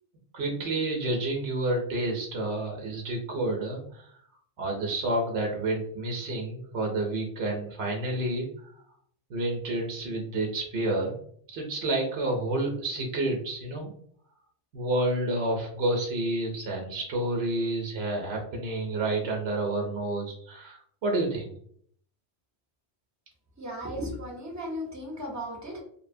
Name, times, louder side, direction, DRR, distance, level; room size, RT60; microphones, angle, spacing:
voice 1, 0.3-4.1 4.6-8.7 9.3-11.2 11.5-13.9 14.7-21.5, right 2 dB, 75° right, 1 dB, 0.8 m, -29 dB
voice 2, 23.6-25.8, equal, 20° right, -2 dB, 0.5 m, -36 dB
2.7 x 2.0 x 2.5 m, 0.63 s
omnidirectional pair, 1.1 m